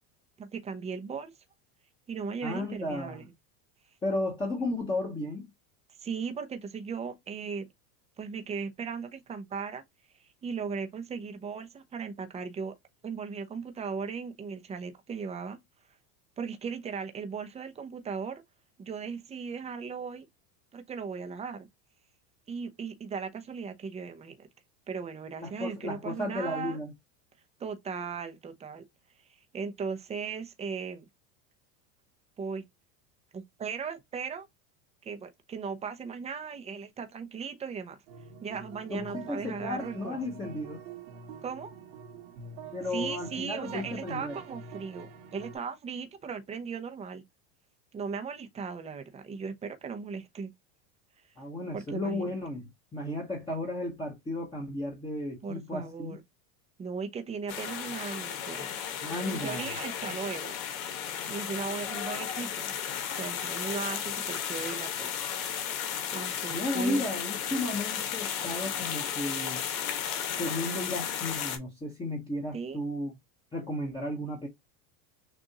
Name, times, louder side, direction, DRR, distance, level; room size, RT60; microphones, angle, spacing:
voice 1, 0.4-1.3 2.1-3.2 6.0-7.7 8.2-9.8 10.2-12.8 13.0-15.6 16.4-18.4 18.8-20.3 20.7-21.7 22.5-24.5 24.9-26.8 27.6-28.8 29.5-31.1 32.4-32.6 33.3-34.5 35.0-38.0 38.4-40.2 41.4-41.7 42.9-47.2 47.9-50.5 51.7-52.4 55.4-56.2 56.8-58.8 59.3-60.6 61.3-62.7 63.0-65.2 65.5-65.9 66.1-67.0 72.5-72.8, right 5 dB, 15° right, 0.7 m, -37 dB
voice 2, 2.4-3.3 4.0-5.5 25.4-26.9 38.9-40.8 42.7-44.4 51.4-52.6 52.9-56.2 59.0-59.7 66.5-69.6 70.4-73.1 73.5-74.5, left 1 dB, 10° left, 1.1 m, -34 dB
sound 1, 38.1-45.6, right 5 dB, 85° right, 1.7 m, -46 dB
sound 2, 57.5-71.6, left 9 dB, 75° left, 1.6 m, -34 dB
6.4 x 2.6 x 2.9 m
supercardioid pair, 145°, 42 cm